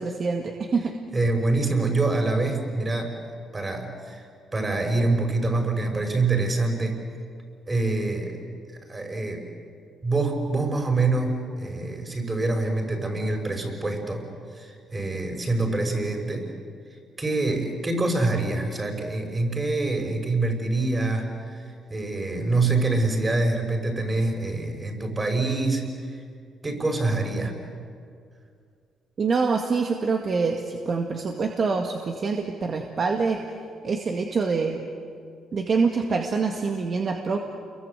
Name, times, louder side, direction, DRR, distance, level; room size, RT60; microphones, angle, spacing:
voice 1, 0.0-0.9 29.2-33.4 33.8-34.8 35.5-37.4, right 4 dB, 45° right, 2 dB, 2.0 m, -25 dB
voice 2, 1.1-3.1 3.5-4.2 4.5-7.0 7.7-8.4 8.9-9.5 10.0-14.2 14.5-16.4 17.2-26.2 26.6-27.6, right 2 dB, 25° right, 3 dB, 5.7 m, -25 dB
30.0 x 23.0 x 8.2 m, 2.3 s
cardioid pair, 90°, 0 cm